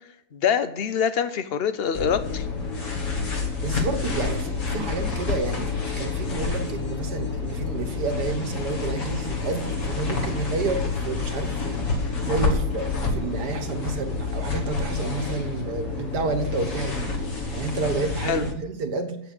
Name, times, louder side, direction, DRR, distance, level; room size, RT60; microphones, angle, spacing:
voice 1, 0.3-2.5 18.2-18.4, left 7 dB, 60° left, 11 dB, 0.6 m, -24 dB
sound 1, 1.9-18.5, left 4 dB, 45° left, 1.9 m, -28 dB
voice 2, 3.6-5.7 6.0-17.1 17.5-19.2, right 4 dB, 65° right, 4 dB, 1.8 m, -30 dB
8.2 x 8.2 x 8.7 m, 0.79 s
omnidirectional pair, 1.9 m